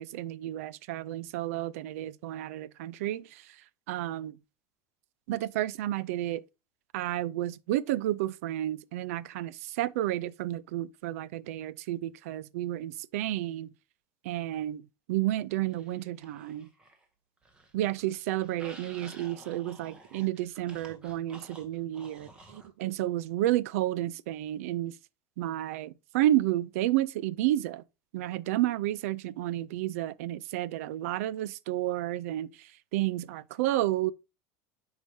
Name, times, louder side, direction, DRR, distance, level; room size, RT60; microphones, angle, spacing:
voice 1, 0.0-3.4 3.9-4.4 5.3-6.4 6.9-13.7 14.2-14.8 15.1-16.7 17.7-24.9 25.4-27.8 28.1-34.1, right 14 dB, 80° right, 0.4 m, -31 dB
sound 1, 15.7-17.1 17.4-22.7, right 2 dB, 15° right, 1.0 m, -52 dB
7.7 x 4.9 x 2.7 m
cardioid pair, 170°, 8 cm